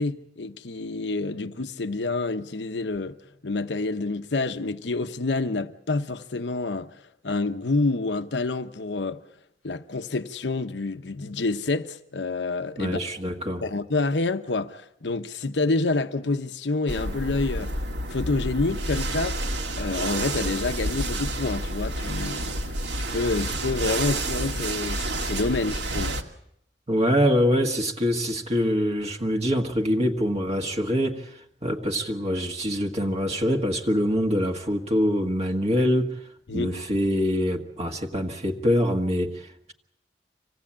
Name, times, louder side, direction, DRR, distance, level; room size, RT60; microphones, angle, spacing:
voice 1, 0.0-3.2 3.4-9.2 9.6-13.1 13.6-17.7 18.1-19.4 19.8-22.7 23.1-26.2 36.5-36.7, left 3 dB, 85° left, 0.9 m, -28 dB
voice 2, 12.8-13.6 26.9-36.2 36.5-39.7, equal, 35° right, 1.6 m, -24 dB
sound 1, 16.9-26.2, right 1 dB, 80° right, 2.1 m, -29 dB
26.0 x 17.5 x 8.7 m
head